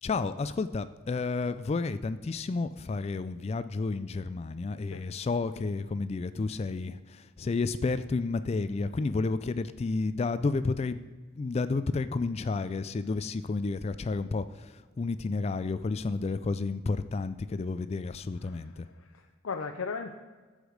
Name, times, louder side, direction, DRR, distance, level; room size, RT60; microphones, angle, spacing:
voice 1, 0.0-11.0 11.4-18.9, left 3 dB, 30° left, 13 dB, 0.3 m, -31 dB
voice 2, 18.4-20.1, left 5 dB, 85° left, 4 dB, 0.6 m, -38 dB
14.0 x 5.0 x 5.1 m, 1.4 s
head